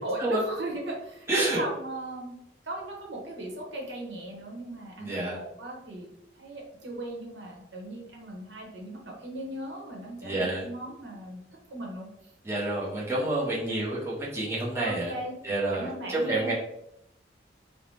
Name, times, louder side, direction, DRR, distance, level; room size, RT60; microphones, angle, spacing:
voice 1, 0.0-2.3 2.6-6.1 6.4-11.4 11.7-12.1 13.7-13.9 14.8-15.3 15.7-16.5, right 1 dB, 75° right, -1 dB, 0.8 m, -37 dB
voice 2, 1.3-1.6 5.0-5.4 10.2-10.6 12.4-15.1 15.4-16.5, right 2 dB, 15° right, -7 dB, 0.6 m, -28 dB
2.6 x 2.0 x 3.1 m, 0.82 s
head